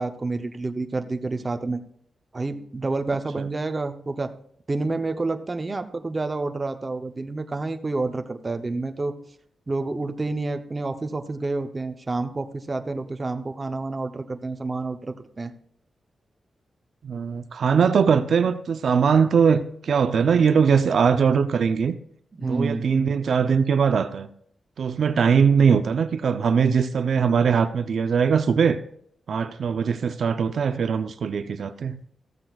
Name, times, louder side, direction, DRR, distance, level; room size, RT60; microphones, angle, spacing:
voice 1, 0.0-1.8 2.3-4.3 4.7-9.1 9.7-15.5 22.4-22.9, right 3 dB, 25° right, 7 dB, 0.7 m, -29 dB
voice 2, 17.0-22.0 22.4-24.3 24.8-28.8 29.3-32.0, right 6 dB, 60° right, 10 dB, 0.6 m, -21 dB
15.0 x 14.0 x 2.4 m, 0.66 s
wide cardioid pair, 170°, 0 cm